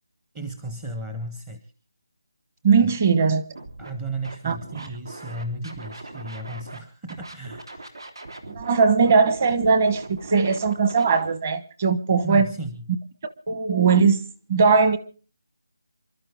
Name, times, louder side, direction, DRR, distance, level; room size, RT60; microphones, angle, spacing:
voice 1, 0.3-1.7 2.8-2.9 3.8-7.9 12.2-12.8, right 2 dB, 10° right, 0.7 m, -34 dB
voice 2, 2.6-3.4 4.4-4.9 8.5-12.5 13.2-14.2 14.5-15.0, right 5 dB, 25° right, 1.1 m, -20 dB
Scratching (performance technique), 3.5-3.9 4.2-6.8 7.1-11.3, right 2 dB, 85° right, 3.5 m, -40 dB
27.5 x 12.5 x 3.5 m
figure-of-eight pair, 170°, 2 cm